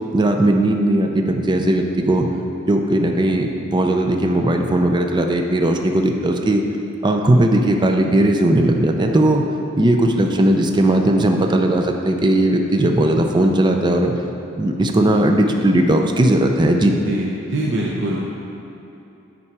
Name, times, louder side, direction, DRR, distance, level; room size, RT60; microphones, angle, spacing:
voice 1, 0.1-2.3 2.7-6.6 7.0-9.4 9.7-14.1 14.6-17.0, right 1 dB, 20° right, 3 dB, 0.4 m, -17 dB
voice 2, 17.0-18.2, right 1 dB, 60° right, -3 dB, 0.8 m, -23 dB
8.6 x 5.4 x 4.7 m, 2.9 s
head